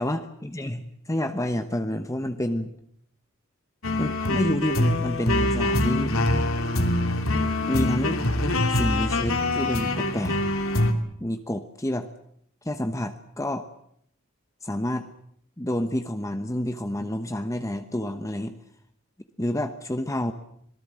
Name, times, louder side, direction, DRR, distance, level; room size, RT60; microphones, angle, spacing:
voice 1, 0.0-2.8 4.0-6.3 7.7-8.2 8.7-10.4 11.2-12.1 12.6-13.7 14.6-15.1 15.6-18.5 19.4-20.3, left 1 dB, 15° left, 8 dB, 1.0 m, -29 dB
sound 1, 3.8-10.9, left 1 dB, 80° left, 2.8 m, -24 dB
26.0 x 19.5 x 7.5 m, 0.69 s
head